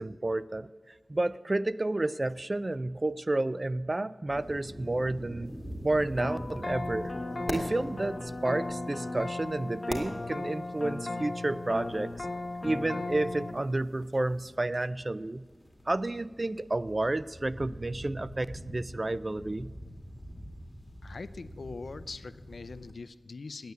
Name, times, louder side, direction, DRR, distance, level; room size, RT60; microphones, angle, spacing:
voice 1, 0.0-5.6 5.8-7.1 7.5-12.3 12.6-15.4 15.9-19.7, right 2 dB, 40° right, 17 dB, 0.4 m, -31 dB
sound 1, 4.3-22.9, equal, 15° left, 2.3 m, -45 dB
sound 2, 6.2-13.5, left 2 dB, 45° left, 1.0 m, -36 dB
voice 2, 21.0-23.7, left 4 dB, 85° left, 14 dB, 0.4 m, -42 dB
9.5 x 8.9 x 8.0 m, 1.5 s
wide cardioid pair, 60°, 0 cm